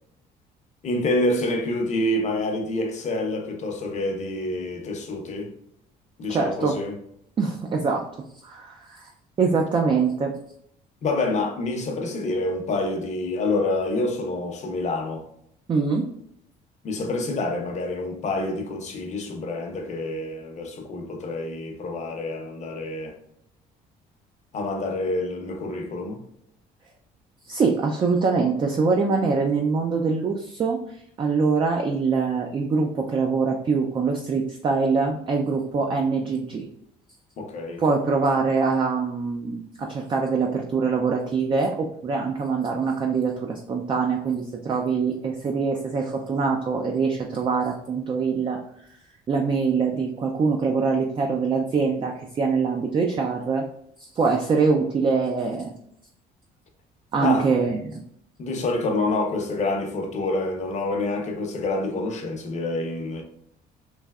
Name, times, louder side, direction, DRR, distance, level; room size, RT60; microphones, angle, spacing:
voice 1, 0.8-5.5 6.2-7.0 11.0-15.2 16.8-23.2 24.5-26.2 37.4-37.8 57.2-57.5 58.4-63.2, left 2 dB, 45° left, 0.7 m, -27 dB
voice 2, 6.3-6.7 7.4-8.0 8.4-9.1 9.4-10.3 15.7-16.1 27.4-36.7 37.8-48.6 49.3-53.6 54.1-55.7 57.1-58.0, right 4 dB, 30° right, 0.4 m, -24 dB
3.2 x 2.6 x 2.3 m
cardioid pair, 110°, 17 cm